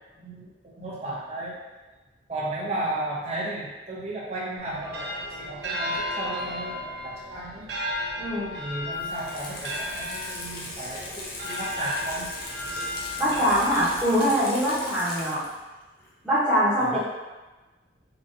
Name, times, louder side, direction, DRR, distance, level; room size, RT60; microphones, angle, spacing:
voice 1, 0.2-1.6 2.3-7.7 8.6-12.3 16.8-17.0, right 1 dB, 35° right, -6 dB, 0.9 m, -34 dB
sound 1, 4.6-14.5, left 1 dB, 60° right, 0.6 m, -34 dB
voice 2, 8.2-8.6 13.2-15.4 16.2-17.0, equal, ahead, -17 dB, 1.4 m, -23 dB
Water tap faucet / Sink (filling or washing), 8.9-15.7 16.0-16.1, left 2 dB, 50° left, 0.6 m, -38 dB
4.0 x 3.0 x 2.6 m, 1.2 s
head